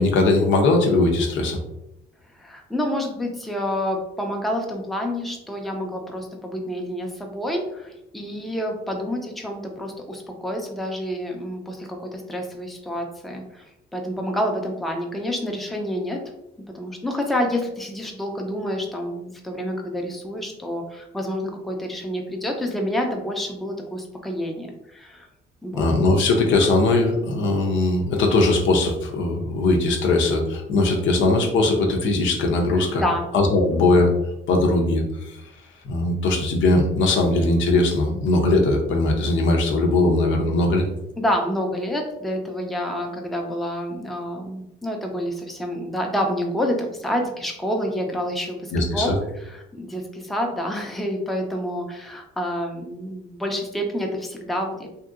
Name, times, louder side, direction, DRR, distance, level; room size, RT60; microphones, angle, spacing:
voice 1, 0.0-1.6 25.7-33.0 33.3-34.1 34.5-35.4 35.8-40.9 48.7-49.2, left 2 dB, 75° left, 1 dB, 0.6 m, -20 dB
voice 2, 2.4-13.6 13.9-16.2 16.7-25.3 25.6-25.9 32.7-33.3 41.2-54.9, equal, ahead, 1 dB, 0.5 m, -28 dB
2.8 x 2.7 x 2.4 m, 0.85 s
cardioid pair, 90°, 20 cm